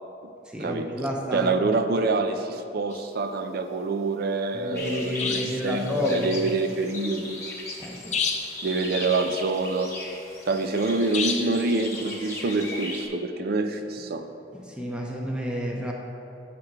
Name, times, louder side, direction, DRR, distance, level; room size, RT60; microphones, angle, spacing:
voice 1, 0.5-1.5 4.5-6.4 7.8-8.2 14.5-15.9, left 1 dB, 5° right, -2 dB, 0.6 m, -30 dB
voice 2, 1.3-7.4 8.6-9.9 10.5-14.2, right 3 dB, 55° right, 8 dB, 0.5 m, -26 dB
sound 1, 2.9-3.1 5.2-5.7 8.1-8.6 11.1-11.6, left 5 dB, 40° left, 0.6 m, -29 dB
sound 2, 4.7-13.1, left 2 dB, 15° left, 1.1 m, -38 dB
6.0 x 4.8 x 6.5 m, 2.8 s
head